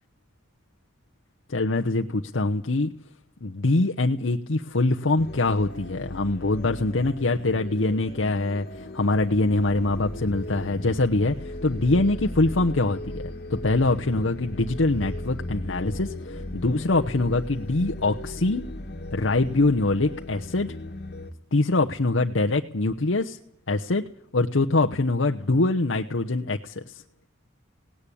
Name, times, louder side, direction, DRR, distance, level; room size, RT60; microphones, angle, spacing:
voice 1, 1.5-2.9 3.4-18.6 19.1-20.7 21.5-23.4 23.7-24.0 24.3-27.0, left 2 dB, 75° left, 4 dB, 0.9 m, -24 dB
sound 1, 5.2-21.3, left 1 dB, 50° left, 1.7 m, -37 dB
18.0 x 17.0 x 8.5 m, 0.65 s
head